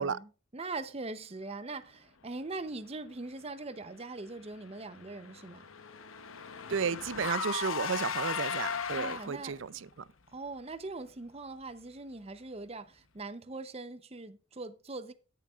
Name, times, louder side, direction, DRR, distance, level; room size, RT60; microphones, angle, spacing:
voice 1, 0.0-5.7 8.9-9.6 10.3-15.1, right 3 dB, 30° right, 0.7 m, -41 dB
Car / Engine, 4.5-9.6, left 6 dB, 80° left, 0.9 m, -37 dB
voice 2, 6.7-9.7, right 6 dB, 65° right, 0.5 m, -33 dB
17.0 x 6.9 x 2.4 m
head